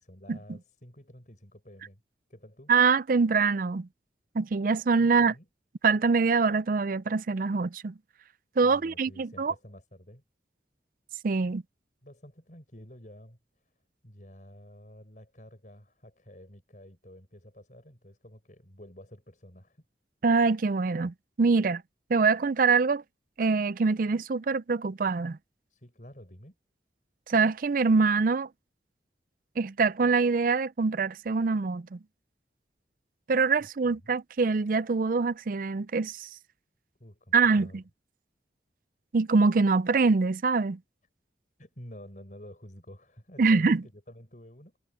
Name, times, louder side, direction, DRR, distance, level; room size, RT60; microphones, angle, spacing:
voice 1, 0.0-2.0 2.3-2.7 5.0-5.5 8.6-10.2 12.0-13.7 14.0-19.8 25.7-26.5 33.8-34.2 37.0-37.8 41.6-44.8, equal, 45° left, 6.7 m, -50 dB
voice 2, 2.7-3.9 4.3-5.3 5.8-7.9 8.6-9.5 11.2-11.6 20.2-21.8 22.1-23.0 23.4-25.4 27.3-28.5 29.6-32.0 33.3-36.3 37.3-37.8 39.1-40.8 43.4-43.8, right 4 dB, 50° right, 0.4 m, -24 dB
head